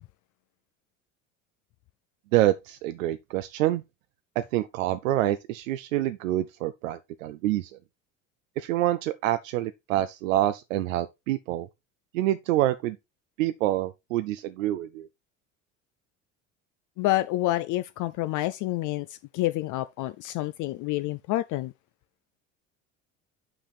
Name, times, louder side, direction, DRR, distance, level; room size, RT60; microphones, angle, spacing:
voice 1, 2.3-3.8 4.4-7.7 8.6-11.7 12.1-13.0 13.4-15.1, right 14 dB, 85° right, 0.6 m, -26 dB
voice 2, 17.0-21.7, left 16 dB, 50° left, 0.5 m, -28 dB
6.0 x 5.0 x 4.3 m
hypercardioid pair, 75°, 38 cm